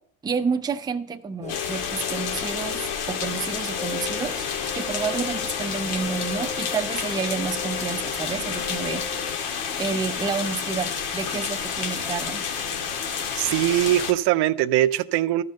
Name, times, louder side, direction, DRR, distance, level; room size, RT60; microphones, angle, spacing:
voice 1, 0.2-4.4 4.7-9.2 9.8-12.4, right 5 dB, 10° right, 6 dB, 0.5 m, -30 dB
Rain, 1.4-9.4, left 6 dB, 15° left, 0.7 m, -36 dB
sound 1, 1.5-14.1, left 6 dB, 90° left, 1.9 m, -30 dB
voice 2, 13.4-15.4, right 14 dB, 60° right, 14 dB, 0.5 m, -21 dB
13.0 x 5.3 x 6.5 m, 0.65 s
cardioid pair, 130°, 45 cm